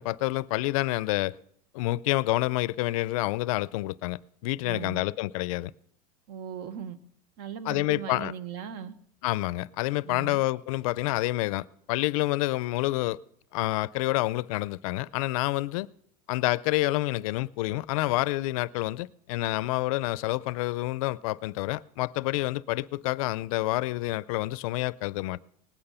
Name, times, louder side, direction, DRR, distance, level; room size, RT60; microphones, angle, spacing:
voice 1, 0.0-1.4 1.7-5.7 7.7-8.3 9.2-13.2 13.5-15.9 16.3-25.4, left 18 dB, 70° left, 0.5 m, -28 dB
voice 2, 4.6-5.0 6.3-7.0 7.4-9.0 10.0-10.4, right 8 dB, 55° right, 1.2 m, -38 dB
19.0 x 8.9 x 5.6 m
supercardioid pair, 155°, 19 cm